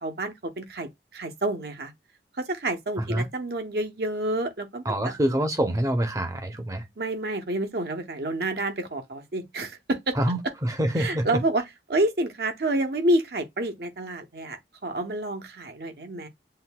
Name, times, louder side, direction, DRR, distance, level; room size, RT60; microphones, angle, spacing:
voice 1, 0.0-1.9 2.4-5.1 7.0-10.1 11.0-11.6 11.9-16.3, right 1 dB, 60° right, 0.8 m, -28 dB
voice 2, 4.8-6.8 10.1-11.2, right 1 dB, 20° right, 0.7 m, -26 dB
7.5 x 2.6 x 2.2 m
head